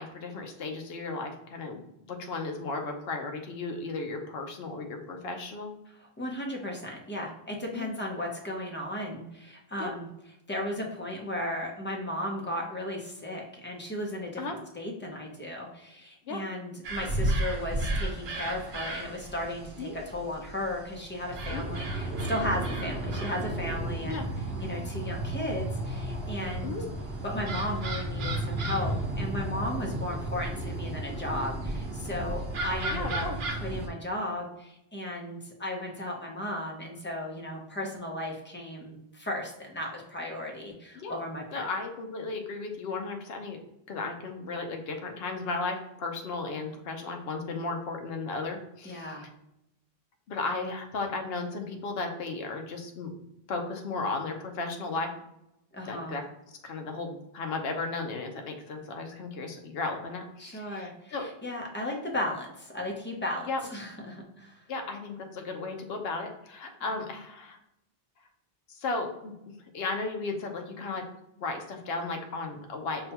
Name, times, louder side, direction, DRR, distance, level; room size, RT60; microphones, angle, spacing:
voice 1, 0.0-5.7 7.7-7.9 9.8-9.9 14.4-14.6 16.2-16.4 19.8-19.9 21.5-21.7 24.0-24.2 26.6-26.8 32.9-33.4 40.9-41.2 41.5-43.6 43.9-49.3 50.3-53.1 53.5-55.1 55.8-56.2 56.6-61.3 63.4-63.6 64.7-67.6 68.7-71.0 71.4-73.1, left 3 dB, 75° left, 4 dB, 0.9 m, -35 dB
voice 2, 6.2-10.1 10.5-24.2 24.6-26.8 27.2-41.6 48.8-49.3 55.7-56.2 60.4-64.6, left 1 dB, 15° left, 0 dB, 0.5 m, -35 dB
sound 1, 16.8-33.9, right 1 dB, 75° right, 0.9 m, -33 dB
5.5 x 2.2 x 2.8 m, 0.84 s
omnidirectional pair, 1.1 m